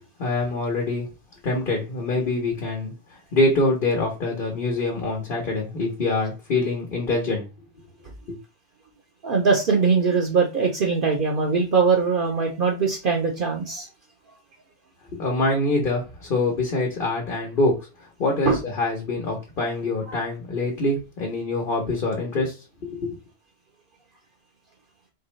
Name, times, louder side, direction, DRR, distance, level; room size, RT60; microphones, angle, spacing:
voice 1, 0.2-1.1 1.4-2.9 3.3-7.4 8.3-8.4 15.1-23.1, left 2 dB, 55° left, 0 dB, 1.2 m, -25 dB
voice 2, 9.2-13.9 18.5-18.6 20.1-20.2, right 5 dB, 55° right, 1 dB, 0.9 m, -21 dB
4.6 x 3.2 x 3.1 m, 0.29 s
omnidirectional pair, 1.1 m